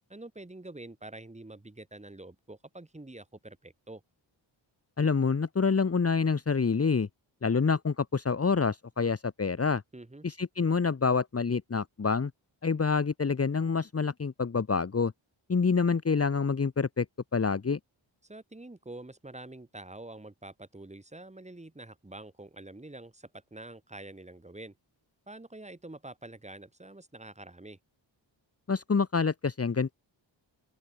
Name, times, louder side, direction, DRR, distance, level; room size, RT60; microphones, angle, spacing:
voice 1, 0.1-4.0 9.9-10.3 18.2-24.8 25.3-27.8, right 2 dB, 15° right, 4.9 m, -46 dB
voice 2, 5.0-7.1 7.4-9.8 10.2-12.3 12.6-15.1 15.5-17.0 17.3-17.8 28.7-29.9, left 5 dB, 30° left, 1.4 m, -27 dB
open air
wide cardioid pair, 150°, 47 cm